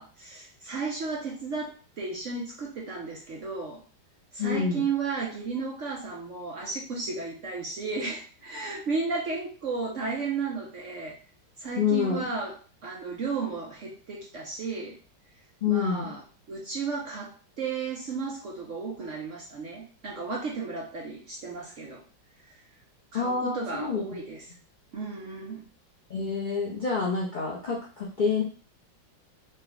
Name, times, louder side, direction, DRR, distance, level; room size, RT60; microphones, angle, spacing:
voice 1, 0.0-3.8 4.3-11.1 11.6-12.6 12.8-15.0 15.7-16.2 16.5-22.0 23.1-24.4 24.9-25.7, right 4 dB, 60° right, -2 dB, 0.8 m, -34 dB
voice 2, 4.4-4.9 11.8-12.2 15.6-16.1 23.1-24.0 26.1-28.4, left 5 dB, 65° left, -4 dB, 0.4 m, -27 dB
3.8 x 2.2 x 3.9 m, 0.38 s
omnidirectional pair, 2.0 m